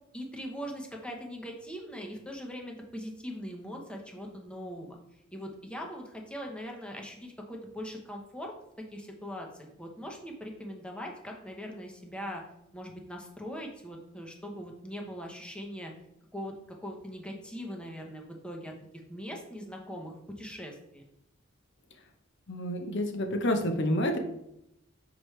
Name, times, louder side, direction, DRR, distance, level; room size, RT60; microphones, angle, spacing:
voice 1, 0.1-5.0 5.3-8.5 8.9-12.4 12.7-15.9 16.3-16.5 16.8-18.7 19.1-21.0, equal, 5° left, 1 dB, 0.9 m, -41 dB
voice 2, 22.5-24.2, left 1 dB, 60° left, 5 dB, 0.9 m, -28 dB
6.1 x 4.9 x 3.2 m, 0.82 s
head